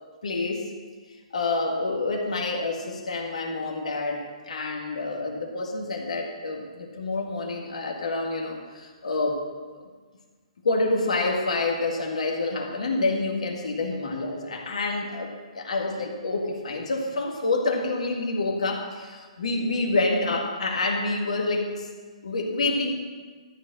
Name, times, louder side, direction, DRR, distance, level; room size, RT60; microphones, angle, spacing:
voice 1, 0.2-0.7 1.3-9.4 10.6-21.9 22.2-22.9, left 2 dB, 75° left, 1 dB, 1.8 m, -27 dB
13.0 x 4.4 x 8.4 m, 1.5 s
hypercardioid pair, 135°, 4 cm